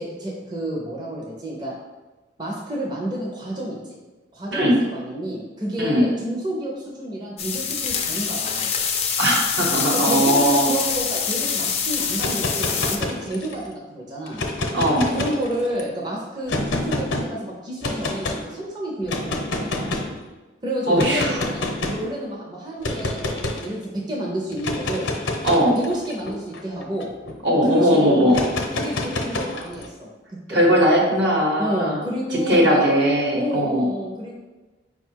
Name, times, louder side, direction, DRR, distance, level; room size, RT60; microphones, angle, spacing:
voice 1, 0.0-1.7 2.4-3.8 4.3-8.7 9.9-14.4 15.1-19.9 20.6-23.3 23.6-25.1 25.7-27.1 27.6-30.6 31.6-32.9 33.3-34.3, equal, 25° right, -4 dB, 0.6 m, -29 dB
sound 1, 7.4-13.0, left 6 dB, 35° left, 0.4 m, -25 dB
voice 2, 9.2-10.7 14.7-15.1 20.9-21.4 25.4-25.8 27.4-28.4 30.5-32.0 32.3-33.9, equal, 65° right, -2 dB, 1.1 m, -19 dB
sound 2, 12.1-13.6 14.3-15.8 16.5-17.2 17.8-18.4 19.1-20.2 21.0-22.1 22.8-23.7 24.5-27.4 28.3-29.9, left 2 dB, 75° left, 0.7 m, -28 dB
5.2 x 2.3 x 4.4 m, 1.2 s
head